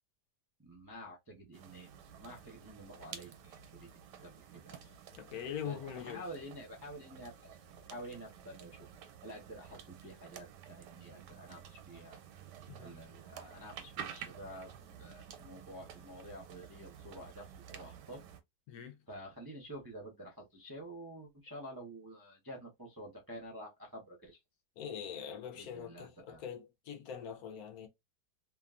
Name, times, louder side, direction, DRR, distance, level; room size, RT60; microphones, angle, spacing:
voice 1, 0.6-1.9 2.2-3.9 4.2-4.8 5.6-7.3 7.9-8.9 9.2-12.2 12.8-14.7 15.0-18.2 19.1-24.4 25.5-26.4, right 1 dB, 30° right, 0.4 m, -49 dB
sound 1, 1.5-18.4, right 8 dB, 90° right, 1.2 m, -51 dB
voice 2, 5.2-6.2 12.7-12.9 18.7-19.0 24.8-27.9, left 8 dB, 70° left, 1.1 m, -43 dB
2.9 x 2.4 x 2.4 m
omnidirectional pair, 1.8 m